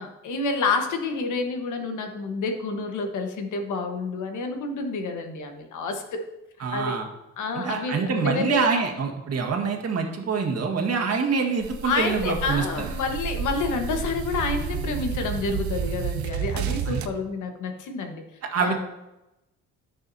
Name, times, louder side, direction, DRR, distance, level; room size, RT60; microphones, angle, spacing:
voice 1, 0.0-6.2 6.6-7.0 7.4-8.7 11.8-18.2 18.6-18.8, left 4 dB, 80° left, 5 dB, 1.3 m, -29 dB
voice 2, 6.6-7.1 7.5-12.6 16.9-17.0 18.4-18.8, right 5 dB, 55° right, 1 dB, 1.7 m, -25 dB
sound 1, 11.6-17.1, right 8 dB, 70° right, 0.7 m, -31 dB
13.0 x 6.3 x 2.8 m, 0.94 s
cardioid pair, 90°, 30 cm